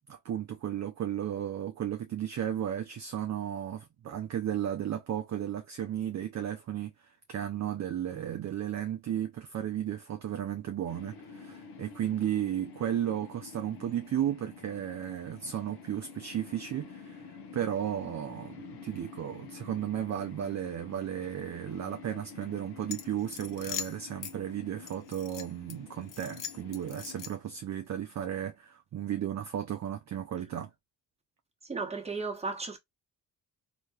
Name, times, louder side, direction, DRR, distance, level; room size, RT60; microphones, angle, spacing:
voice 1, 0.1-30.7, right 10 dB, 40° right, 0.5 m, -34 dB
sound 1, 10.9-27.3, left 5 dB, 70° left, 1.0 m, -49 dB
sound 2, 22.9-24.3 24.9-25.7 26.1-27.5, left 9 dB, 50° left, 0.7 m, -41 dB
voice 2, 31.6-32.8, right 4 dB, 15° right, 1.0 m, -35 dB
3.1 x 2.9 x 2.3 m
cardioid pair, 75°, 43 cm